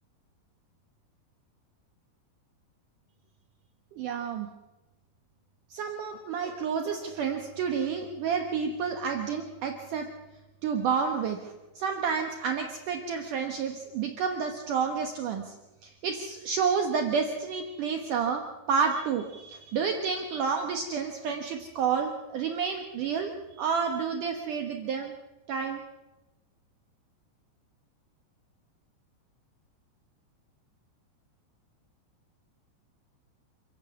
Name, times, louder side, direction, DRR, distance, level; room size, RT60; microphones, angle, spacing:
voice 1, 3.9-4.5 5.7-10.1 10.6-15.6 15.8-18.4 18.7-23.3 23.6-25.1 25.5-25.8, right 6 dB, 70° right, 4 dB, 1.9 m, -30 dB
28.0 x 16.0 x 7.1 m, 1.1 s
omnidirectional pair, 5.6 m